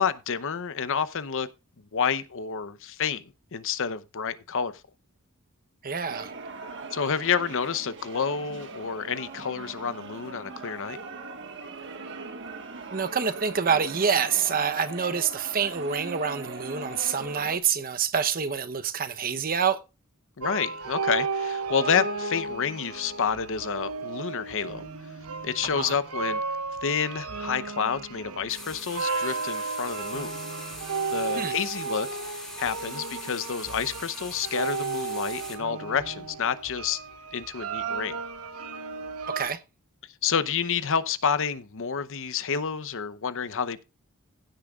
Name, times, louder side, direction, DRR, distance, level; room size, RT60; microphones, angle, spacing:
voice 1, 0.0-1.5 1.9-3.2 3.5-4.7 6.9-11.0 20.4-24.9 25.4-26.4 26.8-30.3 31.1-37.0 37.3-38.2 40.2-43.8, left 6 dB, 60° left, 0.8 m, -29 dB
voice 2, 5.8-6.3 12.9-19.8 25.7-26.0 31.4-31.5 39.4-39.6, right 6 dB, 40° right, 0.9 m, -27 dB
sound 1, 6.0-17.6, right 3 dB, 55° right, 1.6 m, -40 dB
sound 2, 20.4-39.5, right 4 dB, 80° right, 1.1 m, -34 dB
sound 3, 28.5-35.6, left 1 dB, ahead, 2.4 m, -42 dB
16.0 x 8.7 x 2.4 m
head